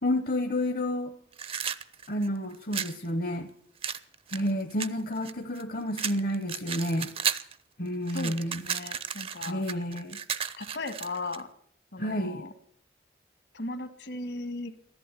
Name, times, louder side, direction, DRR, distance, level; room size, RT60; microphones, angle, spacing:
voice 1, 0.0-1.1 2.1-3.5 4.3-7.1 7.8-8.6 9.5-10.2 12.0-12.5, left 1 dB, 50° left, 7 dB, 0.8 m, -30 dB
sound 1, 1.3-3.0 3.8-5.6 5.9-7.5 7.9-11.4, right 7 dB, 30° right, 0.5 m, -34 dB
voice 2, 8.1-9.6 10.6-11.5 11.9-12.5 13.5-14.7, left 2 dB, 70° left, 10 dB, 1.5 m, -37 dB
13.5 x 11.5 x 8.0 m, 0.64 s
head